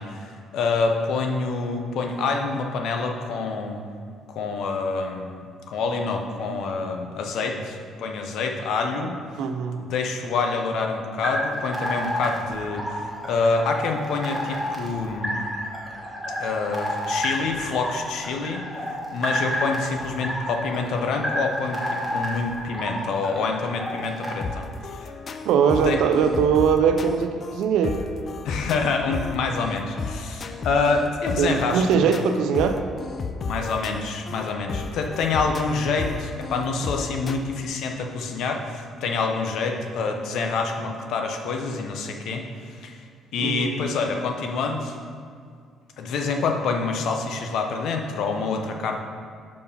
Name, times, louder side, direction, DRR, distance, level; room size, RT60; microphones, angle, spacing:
voice 1, 0.0-3.8 4.3-9.2 9.8-15.4 16.4-18.6 19.1-24.7 24.9-25.1 25.8-26.0 28.4-32.0 33.5-43.0 43.3-45.0 46.0-49.0, left 4 dB, 75° left, 3 dB, 0.7 m, -27 dB
voice 2, 9.4-9.8 25.4-28.0 31.4-32.8 43.4-43.8, right 7 dB, 80° right, 7 dB, 0.5 m, -21 dB
sound 1, 11.2-24.4, equal, 5° left, 1.4 m, -30 dB
sound 2, 24.4-37.4, left 4 dB, 45° left, 0.4 m, -33 dB
5.3 x 4.7 x 5.3 m, 2.2 s
cardioid pair, 95°, 0 cm